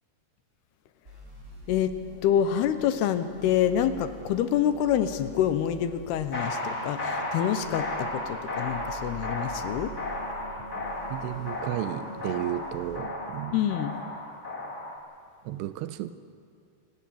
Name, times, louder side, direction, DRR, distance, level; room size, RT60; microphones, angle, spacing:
sound 1, 1.0-13.0, right 1 dB, 20° right, 4.6 m, -48 dB
voice 1, 2.2-9.9 13.5-14.0, left 10 dB, 75° left, 10 dB, 2.7 m, -26 dB
sound 2, 5.0-13.2, right 1 dB, 60° right, 6.1 m, -45 dB
sound 3, 6.3-15.0, left 2 dB, 30° left, 2.2 m, -34 dB
voice 2, 11.1-13.6 15.4-16.1, right 12 dB, 80° right, 12 dB, 2.8 m, -33 dB
28.0 x 16.0 x 7.5 m, 2.2 s
omnidirectional pair, 5.0 m